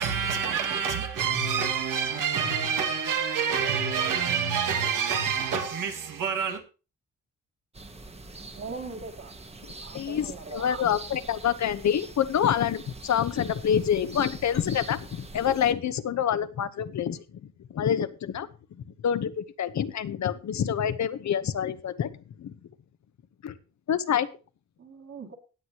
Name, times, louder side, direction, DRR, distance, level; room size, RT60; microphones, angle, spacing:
voice 1, 0.0-6.6, right 6 dB, 85° right, 2.0 m, -27 dB
sound 1, 7.7-15.7, right 2 dB, 20° right, 1.2 m, -44 dB
voice 2, 8.5-9.3 9.8-10.8 11.1-11.2 24.8-25.4, right 4 dB, 45° right, 2.3 m, -40 dB
voice 3, 9.9-18.5 19.0-22.1 23.4-23.5 23.9-24.3, left 9 dB, 60° left, 1.0 m, -27 dB
18.0 x 8.0 x 2.9 m
cardioid pair, 120°, 31 cm